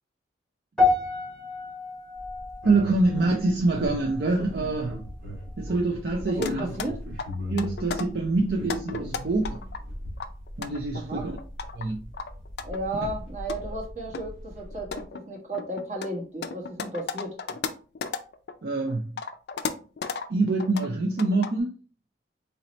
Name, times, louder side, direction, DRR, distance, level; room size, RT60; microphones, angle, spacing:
sound 1, 0.8-5.2 5.4-5.8 6.5-6.6, left 3 dB, 5° left, 0.8 m, -30 dB
sound 2, 2.2-15.0, equal, 85° right, 1.6 m, -38 dB
voice 1, 2.6-5.0 5.6-6.7 7.5-9.6 10.6-11.3 11.7-12.0 13.6-13.7 18.6-19.1 20.3-21.7, right 2 dB, 60° right, 0.5 m, -25 dB
voice 2, 6.2-7.0 10.9-11.3 12.6-17.3, right 1 dB, 40° right, 1.1 m, -34 dB
sound 3, 6.4-6.9 7.2-8.1 8.5-9.8 10.2-11.9 12.1-13.1 13.5-13.6 14.1-14.3 14.7-18.5 18.9-20.3 20.6-20.9 21.2-21.6, left 5 dB, 60° left, 0.4 m, -34 dB
4.0 x 2.8 x 3.0 m
head